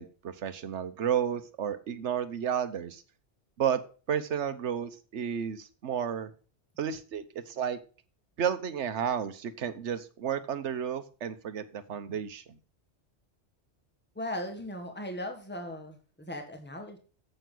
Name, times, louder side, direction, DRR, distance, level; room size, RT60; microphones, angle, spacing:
voice 1, 0.0-3.0 3.6-3.8 4.1-6.3 6.8-7.8 8.4-12.4, right 8 dB, 75° right, 12 dB, 1.2 m, -32 dB
voice 2, 14.1-17.0, left 1 dB, 10° left, 5 dB, 1.6 m, -38 dB
9.3 x 7.8 x 3.9 m, 0.37 s
omnidirectional pair, 1.2 m